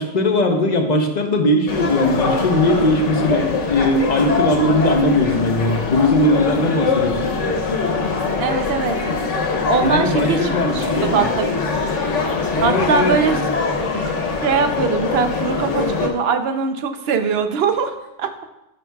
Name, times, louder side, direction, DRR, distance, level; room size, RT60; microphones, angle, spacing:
voice 1, 0.0-7.5 9.8-11.3 12.5-13.2, left 1 dB, 40° left, 4 dB, 0.8 m, -19 dB
sound 1, 1.7-16.1, left 4 dB, 85° left, 1.3 m, -23 dB
voice 2, 8.4-9.0 9.7-11.5 12.6-13.4 14.4-18.3, right 5 dB, 65° right, 7 dB, 0.9 m, -21 dB
10.5 x 6.3 x 2.3 m, 0.92 s
omnidirectional pair, 1.2 m